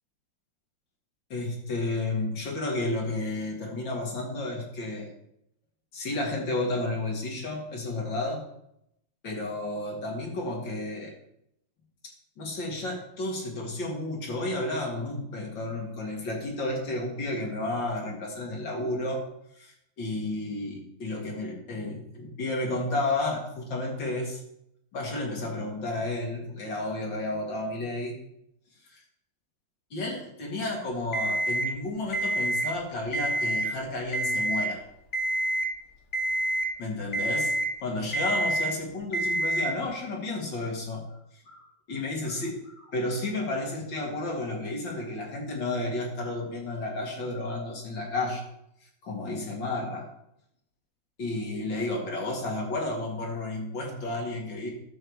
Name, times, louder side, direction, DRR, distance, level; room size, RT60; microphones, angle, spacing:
voice 1, 1.3-5.1 5.9-8.4 9.2-11.1 12.4-19.2 19.6-24.4 24.9-28.2 28.8-29.0 29.9-34.8 36.8-37.5 37.8-41.1 41.5-48.4 49.0-50.1 51.2-54.7, left 2 dB, 80° left, 0 dB, 2.9 m, -32 dB
Alarm, 31.1-31.7 32.1-32.7 33.1-33.7 34.1-34.7 35.1-35.7 36.1-36.7 37.1-37.7 38.1-38.7 39.1-39.7, right 1 dB, 40° left, 1.5 m, -27 dB
11.5 x 4.7 x 7.1 m, 0.78 s
omnidirectional pair, 2.0 m